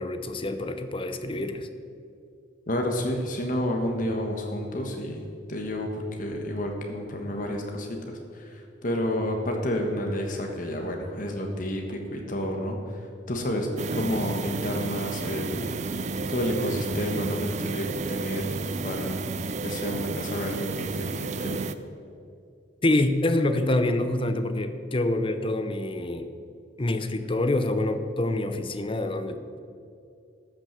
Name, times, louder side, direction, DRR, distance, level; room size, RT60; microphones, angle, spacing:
voice 1, 0.0-1.7 22.8-26.3 26.8-29.6, left 1 dB, 30° left, 9 dB, 0.7 m, -26 dB
voice 2, 2.7-5.2 5.5-12.8 13.3-15.8 16.3-18.5 18.8-19.2 19.6-21.6, left 1 dB, 45° left, 2 dB, 1.3 m, -30 dB
sound 1, 13.8-21.7, right 4 dB, 40° right, 0.4 m, -32 dB
13.5 x 6.2 x 6.7 m, 2.5 s
head